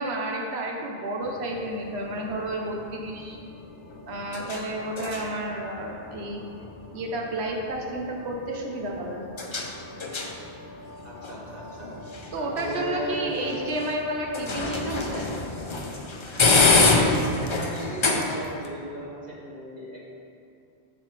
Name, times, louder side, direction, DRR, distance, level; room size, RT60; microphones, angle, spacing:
voice 1, 0.0-3.4 4.1-6.4 6.9-9.2 12.3-15.3, right 1 dB, 80° right, 0 dB, 1.1 m, -31 dB
sound 1, 1.2-18.7, left 3 dB, 35° left, 0.5 m, -28 dB
voice 2, 11.0-11.9 12.4-13.5 17.3-20.1, equal, 45° right, -6 dB, 1.1 m, -36 dB
7.4 x 7.0 x 3.2 m, 2.5 s
omnidirectional pair, 1.1 m